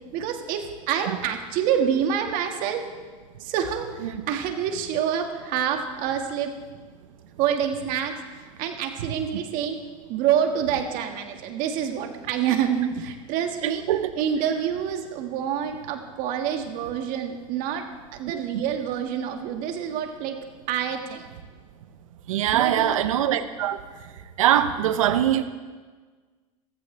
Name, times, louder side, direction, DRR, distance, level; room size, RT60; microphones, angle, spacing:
voice 1, 0.1-2.8 3.4-6.5 7.4-9.8 10.1-13.8 14.2-17.8 18.1-20.4 20.7-21.2 22.5-22.9, right 8 dB, 55° right, 4 dB, 1.9 m, -27 dB
voice 2, 13.6-14.1 18.3-18.6 22.3-23.8 24.4-25.4, right 11 dB, 90° right, 10 dB, 0.8 m, -22 dB
15.0 x 14.5 x 3.4 m, 1.4 s
supercardioid pair, 115°, 17 cm